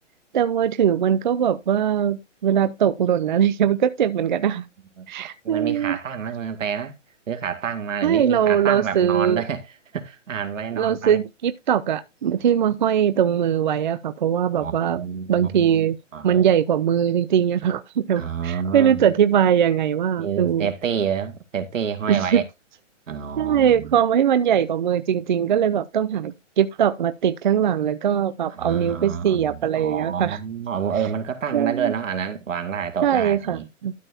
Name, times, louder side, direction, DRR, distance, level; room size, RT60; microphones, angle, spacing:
voice 1, 0.3-4.7 5.1-6.0 8.0-9.4 10.8-15.0 15.3-16.0 16.2-20.7 22.1-22.4 23.4-30.4 31.5-31.9 33.0-33.9, right 9 dB, 40° right, 0.5 m, -21 dB
voice 2, 5.4-7.0 7.3-9.6 9.9-11.2 14.6-16.4 18.2-19.0 20.2-22.4 23.1-24.0 28.5-33.7, right 7 dB, 80° right, 2.1 m, -28 dB
12.5 x 6.8 x 2.7 m
hypercardioid pair, 165°, 38 cm